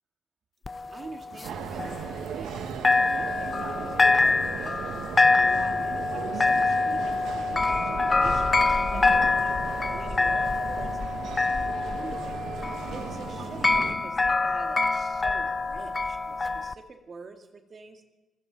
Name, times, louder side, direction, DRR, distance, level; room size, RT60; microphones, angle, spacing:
sound 1, 0.7-2.6 2.8-16.7, left 3 dB, 30° left, 0.5 m, -25 dB
voice 1, 0.9-2.6 3.1-5.0 5.4-9.6 9.9-11.0 11.7-12.4 12.9-18.0, right 4 dB, 40° right, 4 dB, 2.0 m, -45 dB
sound 2, 1.4-13.9, right 7 dB, 85° right, 1.6 m, -37 dB
sound 3, 8.1-14.1, left 4 dB, 55° left, 7.0 m, -47 dB
25.0 x 14.5 x 4.0 m, 1.1 s
cardioid pair, 90°, 0 cm